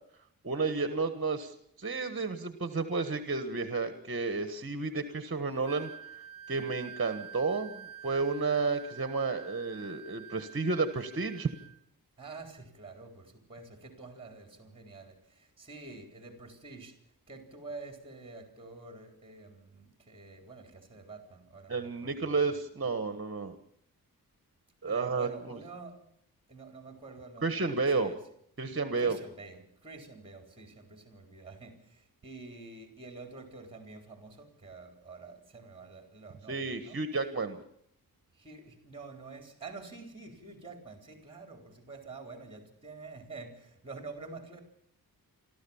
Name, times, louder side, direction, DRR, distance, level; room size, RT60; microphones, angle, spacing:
voice 1, 0.4-5.9 6.5-11.5 21.7-23.5 24.8-25.6 27.4-28.1 28.6-29.2 36.5-37.6, right 4 dB, 35° right, 9 dB, 1.3 m, -31 dB
Wind instrument woodwind instrument, 5.6-11.8, right 8 dB, 60° right, 0.9 m, -48 dB
voice 2, 12.2-22.6 24.9-26.1 26.5-28.2 29.0-37.0 38.3-44.6, right 3 dB, 15° right, 4 dB, 3.8 m, -48 dB
29.0 x 13.0 x 7.2 m, 0.72 s
wide cardioid pair, 115°, 37 cm